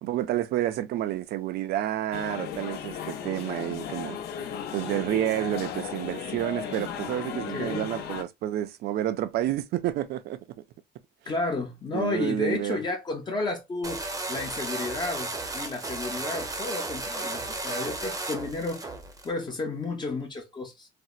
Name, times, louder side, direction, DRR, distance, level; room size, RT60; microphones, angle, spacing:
voice 1, 0.0-4.2 4.7-10.4 11.3-11.4 11.9-12.8, right 12 dB, 70° right, 0.4 m, -29 dB
sound 1, 2.1-8.2, left 8 dB, 70° left, 0.6 m, -36 dB
voice 2, 7.3-7.9 11.3-14.0 14.3-18.9 19.2-20.9, left 3 dB, 25° left, 0.7 m, -32 dB
sound 2, 13.8-19.3, right 2 dB, 20° right, 0.7 m, -34 dB
4.2 x 2.0 x 2.3 m
cardioid pair, 110°, 17 cm